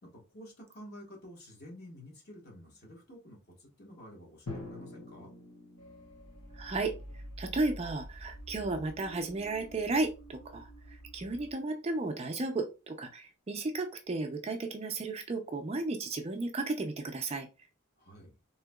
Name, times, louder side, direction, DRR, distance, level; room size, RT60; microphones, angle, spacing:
voice 1, 0.0-5.3 18.0-18.3, equal, 50° left, -1 dB, 1.3 m, -50 dB
Drum, 4.5-8.2, left 2 dB, 90° left, 1.1 m, -47 dB
sound 1, 5.8-11.5, right 1 dB, 70° left, 0.8 m, -48 dB
voice 2, 6.5-17.5, right 3 dB, 30° right, 5 dB, 0.4 m, -34 dB
3.6 x 2.7 x 2.2 m, 0.29 s
head